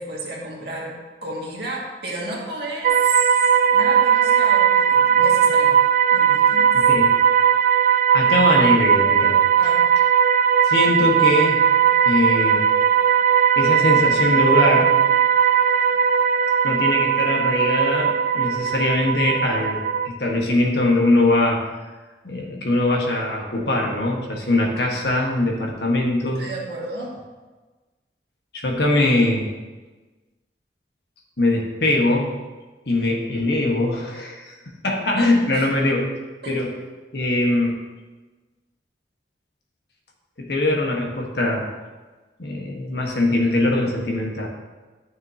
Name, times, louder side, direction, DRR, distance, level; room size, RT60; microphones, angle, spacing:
voice 1, 0.0-5.8 6.1-6.7 9.6-9.9 26.4-27.1 35.5-35.7 36.4-36.5, right 2 dB, 65° right, -4 dB, 2.2 m, -32 dB
sound 1, 2.8-20.1, right 8 dB, 45° right, 0.3 m, -18 dB
voice 2, 6.7-7.1 8.1-9.4 9.6-9.7 10.6-11.6 12.0-12.6 13.6-15.0 16.6-21.6 22.2-26.4 28.5-29.5 31.4-32.3 32.9-34.5 34.8-36.1 36.5-36.7 37.1-37.8 40.4-41.7 42.4-44.5, left 2 dB, 65° left, 0 dB, 1.5 m, -21 dB
12.0 x 6.5 x 2.9 m, 1.3 s
head